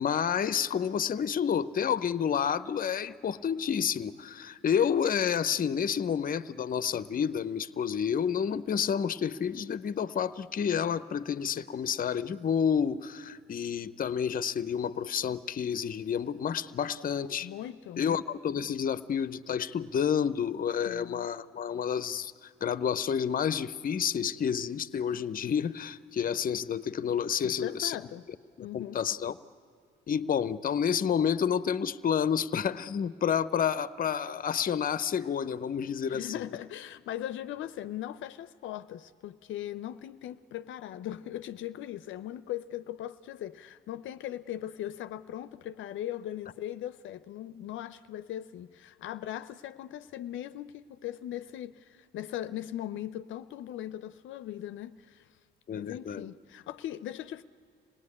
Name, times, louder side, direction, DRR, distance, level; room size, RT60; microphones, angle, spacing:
voice 1, 0.0-17.5 18.0-28.0 28.6-29.3 30.1-36.4 55.7-56.3, left 7 dB, 45° left, 0.7 m, -29 dB
voice 2, 17.4-18.0 20.8-21.3 27.4-28.2 28.6-29.0 36.1-55.3 55.7-57.4, left 12 dB, 80° left, 0.6 m, -39 dB
26.0 x 18.5 x 9.8 m
cardioid pair, 90°, 20 cm